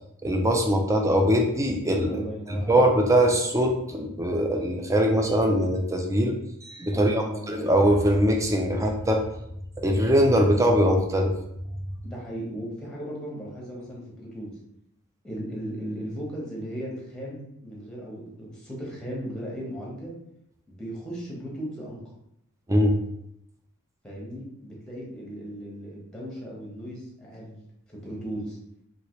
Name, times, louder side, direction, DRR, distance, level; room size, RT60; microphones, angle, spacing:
voice 1, 0.2-2.2 2.5-9.2 9.8-11.3 22.7-23.0, equal, 15° right, 2 dB, 0.4 m, -22 dB
voice 2, 2.1-2.9 6.9-7.7 12.0-14.5 15.2-20.1 20.7-22.0 24.0-27.6 27.9-28.6, equal, 5° left, -5 dB, 0.9 m, -36 dB
3.1 x 2.8 x 3.0 m, 0.79 s
head